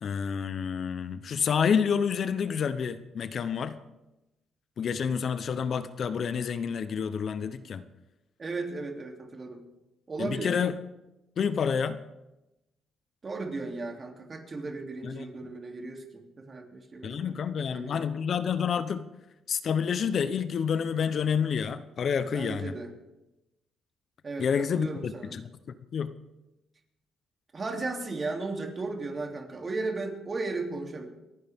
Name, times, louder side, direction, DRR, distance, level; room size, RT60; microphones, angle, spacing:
voice 1, 0.0-3.8 4.8-7.9 10.2-10.7 11.4-12.0 15.0-15.2 17.0-19.1 19.5-22.7 24.4-25.4 25.9-26.1, left 7 dB, 55° left, 12 dB, 0.8 m, -28 dB
voice 2, 8.4-9.6 10.1-10.5 13.2-18.2 22.3-22.9 24.2-25.4 27.5-31.0, right 3 dB, 35° right, 2 dB, 2.9 m, -36 dB
28.5 x 10.0 x 3.6 m, 0.96 s
cardioid pair, 90°, 0 cm